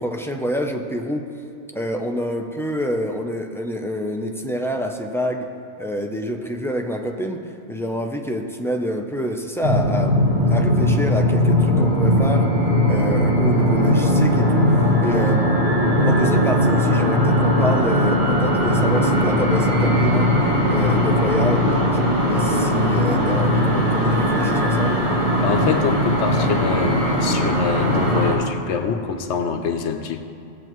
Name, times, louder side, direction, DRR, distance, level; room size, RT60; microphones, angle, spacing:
voice 1, 0.0-1.3 1.7-5.5 5.8-12.5 12.9-15.6 16.0-20.3 20.7-22.0 22.3-25.0, equal, 5° left, 3 dB, 0.3 m, -27 dB
sound 1, 9.6-28.3, equal, 50° right, 2.4 m, -19 dB
voice 2, 25.4-30.2, left 6 dB, 90° left, 6 dB, 1.0 m, -25 dB
16.5 x 8.2 x 3.1 m, 2.6 s
omnidirectional pair, 1.1 m